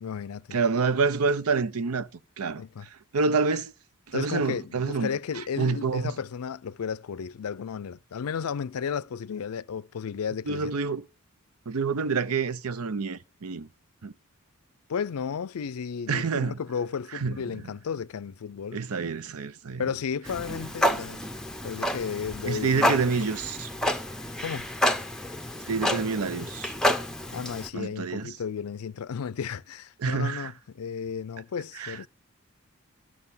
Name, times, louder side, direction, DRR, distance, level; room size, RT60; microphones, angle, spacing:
voice 1, 0.0-0.6 2.6-2.9 4.1-10.8 14.9-18.8 19.8-21.2 21.6-23.1 24.4-24.7 27.3-32.1, left 6 dB, 80° left, 0.4 m, -33 dB
voice 2, 0.5-2.1 2.4-3.7 4.1-5.1 5.6-6.1 10.5-11.0 11.7-13.7 14.0-14.1 16.1-16.6 17.1-17.4 18.7-19.8 22.4-23.7 25.7-26.7 27.7-28.3 30.0-30.5 31.8-32.0, right 4 dB, 85° right, 0.7 m, -27 dB
Clock, 20.2-27.7, equal, 5° left, 0.7 m, -29 dB
13.0 x 6.3 x 5.5 m
head